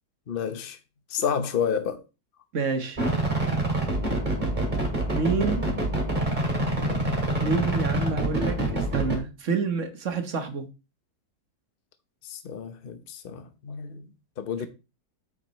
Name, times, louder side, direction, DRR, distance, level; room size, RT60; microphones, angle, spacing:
voice 1, 0.3-0.8 1.1-2.0 12.2-14.1 14.4-14.7, left 7 dB, 40° left, 0.9 m, -30 dB
voice 2, 2.5-3.0 5.1-5.7 7.4-10.7, right 4 dB, 45° right, 1.4 m, -28 dB
sound 1, 3.0-9.2, right 1 dB, 25° right, 2.5 m, -26 dB
8.8 x 8.1 x 3.1 m
omnidirectional pair, 1.9 m